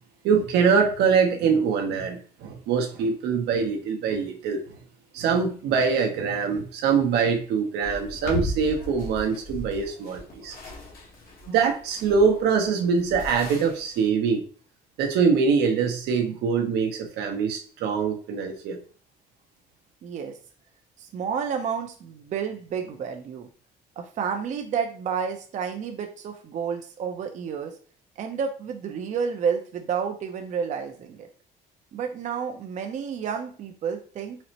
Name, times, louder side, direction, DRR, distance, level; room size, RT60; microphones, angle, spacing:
voice 1, 0.2-4.6 5.1-10.6 11.5-14.4 15.0-18.8, right 5 dB, 80° right, 3 dB, 0.7 m, -23 dB
sound 1, 7.8-14.1, left 1 dB, 60° left, 1.0 m, -37 dB
voice 2, 20.0-20.3 21.0-23.5 24.0-27.7 28.2-31.3 31.9-34.4, right 6 dB, 45° right, 4 dB, 0.5 m, -30 dB
4.1 x 2.1 x 2.7 m, 0.43 s
cardioid pair, 110°, 17 cm